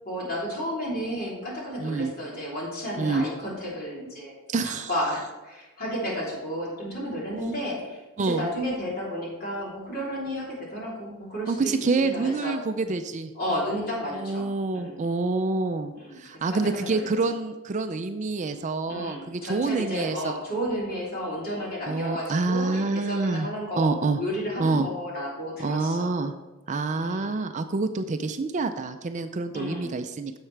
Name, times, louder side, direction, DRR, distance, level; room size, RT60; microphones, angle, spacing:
voice 1, 0.0-4.3 4.6-12.6 13.3-14.5 14.7-15.0 15.9-16.2 16.5-17.1 18.9-23.9 24.2-26.1 26.9-27.3 29.5-29.9, equal, 40° left, -5 dB, 3.3 m, -32 dB
voice 2, 1.8-2.1 3.0-3.3 4.5-4.9 8.2-8.5 11.5-13.3 14.1-20.3 21.9-23.5 23.8-24.2 24.6-24.9 25.6-26.3 26.7-30.4, right 3 dB, 35° right, 8 dB, 0.4 m, -27 dB
10.5 x 7.3 x 3.3 m, 1.1 s
head